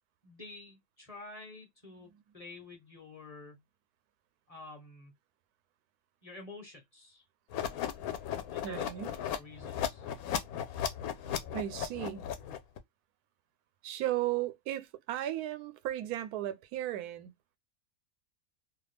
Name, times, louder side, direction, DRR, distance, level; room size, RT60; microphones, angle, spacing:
voice 1, 0.2-3.6 4.5-5.1 6.2-7.2 8.5-8.9 9.3-10.1, left 3 dB, 30° left, 0.7 m, -49 dB
sound 1, 7.5-12.8, left 9 dB, 75° left, 1.0 m, -36 dB
voice 2, 8.6-9.1 11.5-12.3 13.8-17.3, right 13 dB, 90° right, 1.1 m, -35 dB
2.7 x 2.3 x 3.2 m
omnidirectional pair, 1.6 m